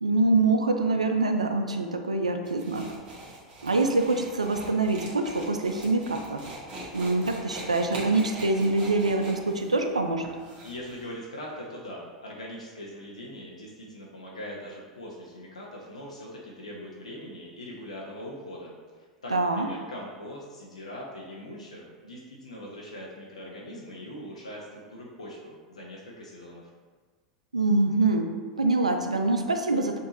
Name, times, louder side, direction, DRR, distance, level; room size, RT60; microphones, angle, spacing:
voice 1, 0.0-2.9 3.6-6.4 6.9-10.2 19.3-19.7 27.5-28.3 28.6-30.0, right 2 dB, 85° right, 5 dB, 0.4 m, -25 dB
sound 1, 2.4-11.0, right 2 dB, 35° right, 1.3 m, -42 dB
voice 2, 10.6-18.7 19.2-26.6, equal, 85° left, -4 dB, 0.7 m, -41 dB
6.3 x 2.7 x 2.8 m, 1.5 s
figure-of-eight pair, 90°, 3 cm